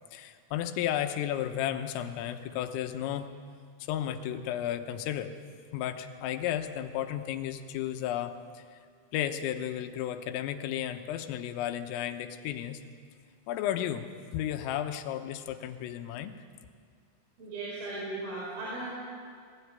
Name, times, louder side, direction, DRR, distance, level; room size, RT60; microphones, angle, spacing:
voice 1, 0.1-3.3 3.8-5.3 5.7-8.8 9.1-12.8 13.5-16.4, left 11 dB, 85° left, 8 dB, 3.6 m, -33 dB
voice 2, 17.4-18.9, right 2 dB, 80° right, -6 dB, 7.2 m, -37 dB
21.0 x 16.5 x 9.5 m, 2.2 s
omnidirectional pair, 5.8 m